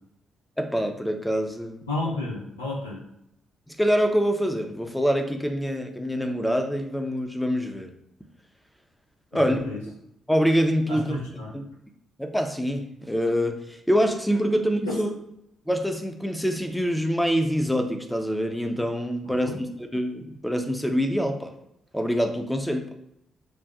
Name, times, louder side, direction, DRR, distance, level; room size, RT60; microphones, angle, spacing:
voice 1, 0.6-1.8 3.7-7.9 9.3-9.8 10.3-11.2 11.5-11.6 12.2-15.1 15.7-19.5 19.9-21.5 21.9-22.9, equal, 5° left, 5 dB, 0.7 m, -25 dB
voice 2, 1.9-3.0 9.3-9.8 10.9-11.5 14.9-15.0 19.2-19.6, left 2 dB, 85° left, -5 dB, 0.9 m, -32 dB
5.4 x 2.5 x 2.4 m, 0.78 s
figure-of-eight pair, 40°, 0 cm